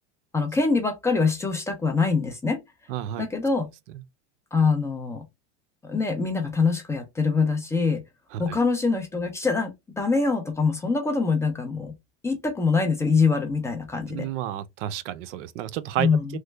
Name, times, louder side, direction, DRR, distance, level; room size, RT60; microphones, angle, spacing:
voice 1, 0.3-2.6 3.2-3.7 4.5-5.3 5.8-8.0 8.4-11.9 12.2-14.3 16.0-16.4, left 4 dB, 10° left, 0.4 m, -24 dB
voice 2, 2.9-3.2 8.3-8.6 14.1-16.4, right 11 dB, 80° right, 0.6 m, -31 dB
3.1 x 2.1 x 3.2 m
supercardioid pair, 145°, 36 cm